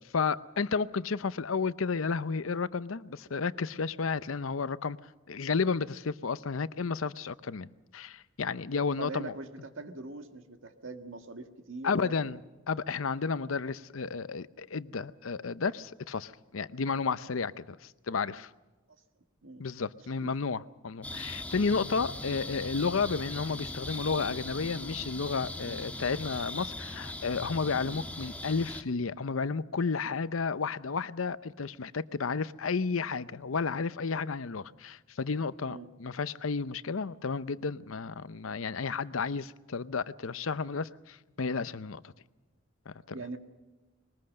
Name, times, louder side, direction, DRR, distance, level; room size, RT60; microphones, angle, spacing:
voice 1, 0.1-5.0 5.3-9.3 11.8-12.4 12.7-18.5 19.6-42.1 42.9-43.0, left 5 dB, 90° left, 0.7 m, -32 dB
voice 2, 8.9-12.3 13.3-13.5 19.4-19.6 20.0-20.3 21.5-21.7 25.7-25.8 27.8-28.0 35.7-35.9 43.1-43.4, right 3 dB, 75° right, 1.8 m, -43 dB
sound 1, 21.0-28.8, left 1 dB, 5° left, 1.3 m, -40 dB
21.5 x 20.0 x 6.5 m
head